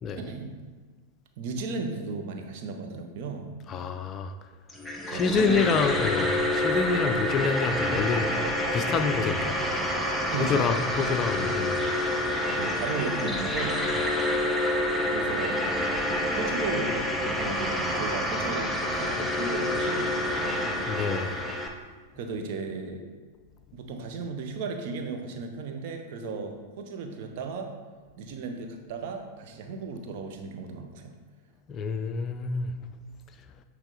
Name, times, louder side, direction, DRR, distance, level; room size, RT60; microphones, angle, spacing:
voice 1, 0.2-0.5 1.4-3.5 5.1-6.1 6.4-6.6 7.2-7.4 10.3-10.7 12.5-13.8 15.1-15.8 16.1-21.0 22.1-23.0 23.7-27.7 28.2-31.1, right 4 dB, 50° right, 4 dB, 0.8 m, -35 dB
voice 2, 3.7-4.3 5.1-8.4 8.7-9.6 10.4-12.3 20.9-21.5 31.7-32.7, left 5 dB, 30° left, 8 dB, 0.4 m, -27 dB
sound 1, 4.7-21.7, left 1 dB, 5° left, 0.7 m, -28 dB
8.8 x 3.2 x 3.9 m, 1.5 s
figure-of-eight pair, 90°, 0 cm